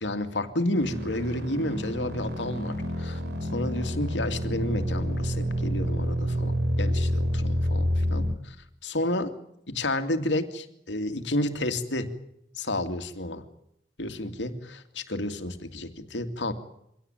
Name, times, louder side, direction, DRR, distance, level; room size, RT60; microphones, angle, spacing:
voice 1, 0.0-8.6 8.8-9.3 9.7-12.2 12.6-13.4 14.0-16.5, left 1 dB, 85° left, 8 dB, 2.5 m, -31 dB
sound 1, 0.8-8.4, equal, 65° right, 3.2 m, -28 dB
24.5 x 17.5 x 9.1 m, 0.77 s
head